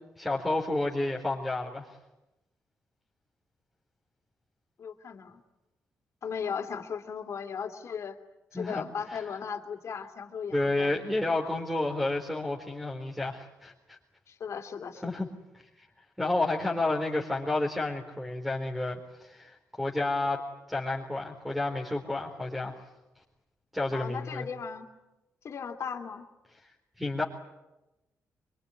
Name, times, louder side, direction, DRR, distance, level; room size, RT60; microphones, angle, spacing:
voice 1, 0.2-1.9 8.5-8.9 9.1-9.2 10.5-14.0 15.0-15.3 15.8-15.9 16.2-20.4 20.7-22.8 23.7-24.5 27.0-27.2, left 2 dB, ahead, -1 dB, 4.0 m, -30 dB
voice 2, 4.8-5.4 6.2-8.1 8.5-11.0 14.3-15.1 23.9-24.9 25.4-26.3, left 6 dB, 60° left, 4 dB, 2.8 m, -37 dB
25.0 x 23.5 x 9.8 m, 0.99 s
cardioid pair, 85°, 6 cm